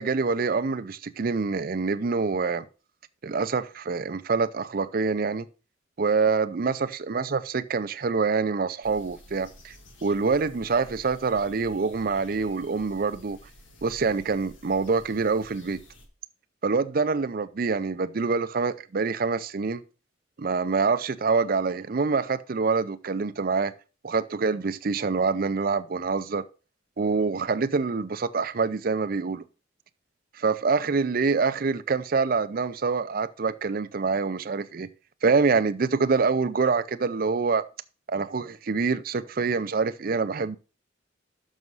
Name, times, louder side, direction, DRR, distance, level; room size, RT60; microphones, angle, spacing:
voice 1, 0.0-2.6 3.2-5.5 6.0-9.7 10.0-13.4 13.8-15.8 16.6-19.8 20.4-23.7 24.0-26.4 27.0-29.4 30.4-34.9 35.2-37.6 38.1-40.6, right 4 dB, 50° right, 0.5 m, -26 dB
sound 1, 8.8-16.1, equal, 85° left, 1.8 m, -51 dB
6.3 x 6.2 x 5.4 m
head